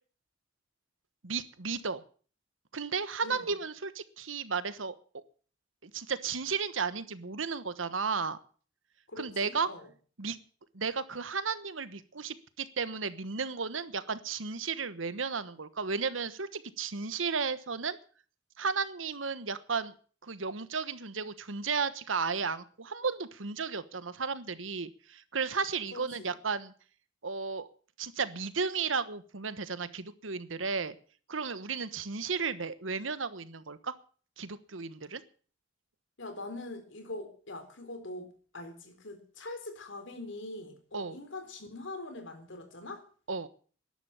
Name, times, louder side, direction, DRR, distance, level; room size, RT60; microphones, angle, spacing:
voice 1, 1.2-2.0 2.7-5.2 5.8-8.4 9.2-9.7 10.2-10.4 10.7-18.0 18.6-19.9 20.2-26.7 27.2-27.7 28.0-30.9 31.3-33.9 34.4-35.2 40.9-41.2 43.3-43.5, right 5 dB, 85° right, 14 dB, 1.2 m, -34 dB
voice 2, 9.1-9.9 25.9-26.3 36.2-43.0, left 2 dB, 70° left, 7 dB, 3.9 m, -43 dB
13.0 x 11.0 x 8.2 m, 0.42 s
head